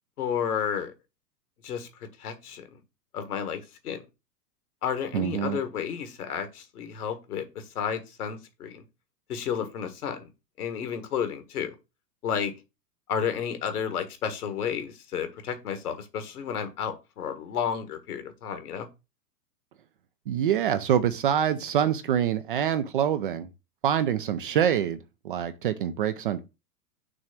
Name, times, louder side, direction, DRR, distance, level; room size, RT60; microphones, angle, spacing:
voice 1, 0.2-0.9 1.6-1.9 2.2-2.7 3.1-4.0 4.8-7.5 7.7-8.8 9.3-10.3 10.6-11.7 12.2-12.5 13.1-18.9, left 7 dB, 65° left, 1.6 m, -31 dB
voice 2, 5.1-5.6 20.3-23.5 23.8-25.0 25.2-26.4, right 9 dB, 35° right, 0.4 m, -25 dB
6.2 x 3.2 x 5.9 m
figure-of-eight pair, 110°, 49 cm